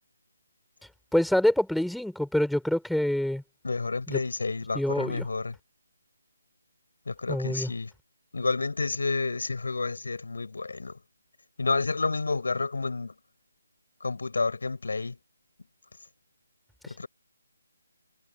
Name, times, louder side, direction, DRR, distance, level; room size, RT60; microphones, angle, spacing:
voice 1, 1.1-3.4 4.1-4.2 4.7-5.3 7.3-7.7, left 1 dB, ahead, 6.9 m, -26 dB
voice 2, 3.6-5.6 7.1-7.9 8.3-11.0 11.6-13.1 14.0-15.2 16.9-17.1, left 3 dB, 70° left, 6.8 m, -30 dB
figure-of-eight pair, 150°, 0 cm